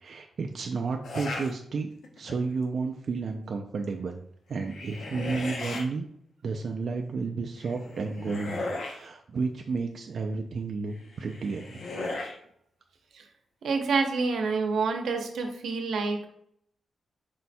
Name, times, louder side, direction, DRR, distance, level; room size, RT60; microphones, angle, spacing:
voice 1, 0.0-4.2 4.5-6.1 6.4-11.8, right 4 dB, 45° right, 3 dB, 0.3 m, -32 dB
sound 1, 1.0-1.5 2.0-2.5 4.5-5.8 7.6-9.0 11.0-12.4, left 2 dB, 70° left, 0.7 m, -36 dB
voice 2, 13.6-16.3, right 4 dB, 80° right, 4 dB, 0.7 m, -28 dB
4.5 x 2.2 x 4.1 m, 0.68 s
wide cardioid pair, 180°, 0 cm